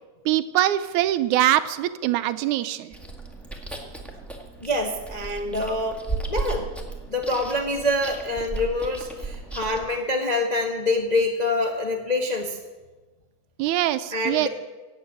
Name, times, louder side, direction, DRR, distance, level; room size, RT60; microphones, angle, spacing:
voice 1, 0.3-2.9 13.6-14.5, right 13 dB, 80° right, 12 dB, 2.0 m, -23 dB
Chewing mastication, 2.9-9.9, right 3 dB, ahead, 0.8 m, -35 dB
voice 2, 4.6-6.0 6.3-6.7 7.1-12.6 14.1-14.5, left 2 dB, 75° left, 1 dB, 0.3 m, -25 dB
16.5 x 8.1 x 9.0 m, 1.3 s
omnidirectional pair, 3.6 m